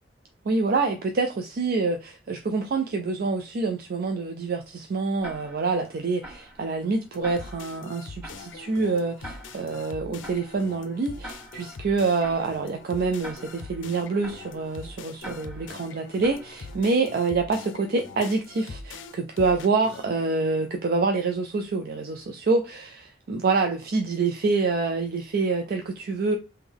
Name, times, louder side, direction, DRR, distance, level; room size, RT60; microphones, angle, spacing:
voice 1, 0.5-26.4, right 4 dB, 50° right, 0.4 m, -26 dB
Tick-tock, 5.2-17.1, equal, 10° right, 1.0 m, -46 dB
sound 1, 7.1-20.1, left 4 dB, 90° left, 0.5 m, -43 dB
3.5 x 2.1 x 3.5 m
head